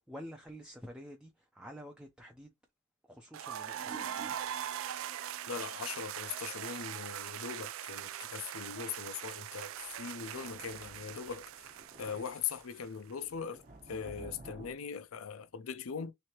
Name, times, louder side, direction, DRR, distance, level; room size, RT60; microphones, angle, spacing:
voice 1, 0.0-2.5 3.1-4.3, equal, 5° right, 0.5 m, -49 dB
sound 1, 3.3-13.1, right 10 dB, 75° right, 0.4 m, -41 dB
sound 2, 3.6-6.0 6.3-6.4 9.7-14.7, right 2 dB, 45° right, 1.1 m, -52 dB
voice 2, 5.5-11.4 12.0-16.1, left 6 dB, 80° left, 0.5 m, -40 dB
3.3 x 3.2 x 2.9 m
head